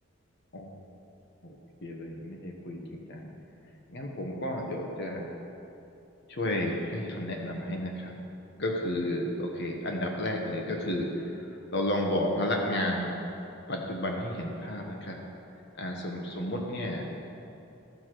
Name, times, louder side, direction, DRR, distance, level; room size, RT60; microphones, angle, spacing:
voice 1, 1.4-3.3 3.9-5.4 6.3-8.1 8.6-13.1 13.7-15.2 15.8-17.1, left 1 dB, 55° left, 1 dB, 1.2 m, -32 dB
13.0 x 4.8 x 6.0 m, 2.7 s
head